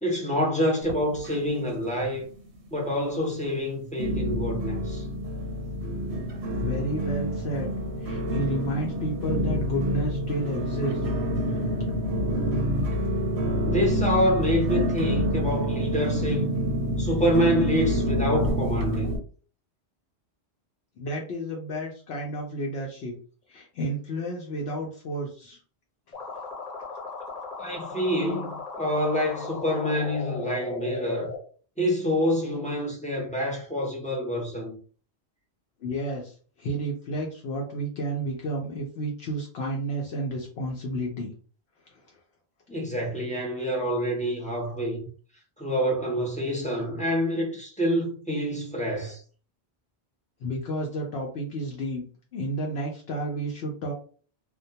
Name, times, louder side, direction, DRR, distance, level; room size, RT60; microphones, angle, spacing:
voice 1, 0.0-2.3 2.7-5.0 13.6-16.6 17.0-19.2 27.6-31.3 31.8-34.8 42.7-45.0 45.6-49.2, equal, 10° left, 0.4 m, -27 dB
sound 1, 0.8-1.8 2.0-2.7 3.2-3.3 4.0-19.2, equal, 80° right, 0.9 m, -27 dB
voice 2, 6.6-11.0 11.5-11.6 21.0-23.1 23.5-25.6 35.8-41.3 41.9-42.0 50.4-52.0 52.3-53.9, right 1 dB, 75° left, 0.8 m, -31 dB
sound 2, 26.1-31.4, left 4 dB, 40° left, 0.9 m, -37 dB
2.2 x 2.1 x 2.7 m
omnidirectional pair, 1.1 m